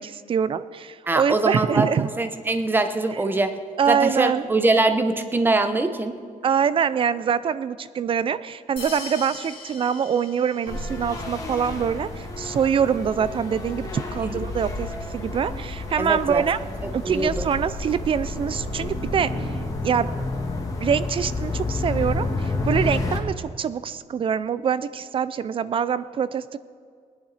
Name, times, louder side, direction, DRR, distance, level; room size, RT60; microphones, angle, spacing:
voice 1, 0.0-2.1 3.8-4.4 6.4-16.6 16.9-19.5 19.8-20.1 20.8-26.6, right 7 dB, 40° right, 15 dB, 0.4 m, -24 dB
voice 2, 1.1-3.6 3.9-6.2 14.2-14.4 16.0-16.4 17.0-17.5, right 2 dB, 15° right, 8 dB, 0.7 m, -23 dB
sound 1, 8.8-11.0, left 4 dB, 40° left, 2.8 m, -39 dB
sound 2, 10.7-23.2, left 2 dB, 25° left, 1.6 m, -30 dB
19.5 x 10.5 x 4.1 m, 2.1 s
wide cardioid pair, 175°, 14 cm